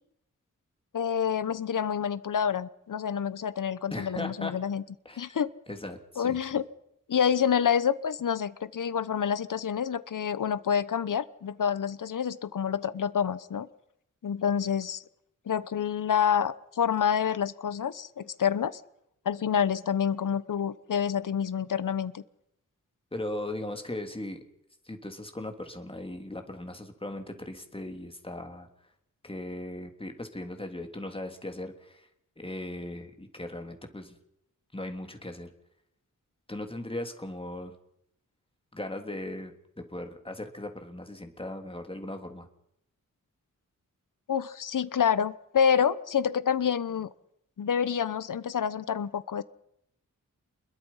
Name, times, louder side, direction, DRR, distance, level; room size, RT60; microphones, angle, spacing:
voice 1, 0.9-4.8 5.2-5.5 6.2-6.6 7.1-13.7 14.2-15.0 15.5-18.8 19.2-22.2 44.3-47.1 47.6-49.4, left 8 dB, 80° left, 16 dB, 1.1 m, -28 dB
voice 2, 3.9-4.5 5.0-5.4 5.7-6.4 23.1-24.4 24.8-28.7 29.2-32.1 32.4-34.1 34.7-35.5 36.5-37.7 38.7-42.5, left 1 dB, 15° left, 5 dB, 3.2 m, -38 dB
28.5 x 22.0 x 5.7 m, 0.78 s
wide cardioid pair, 110°, 31 cm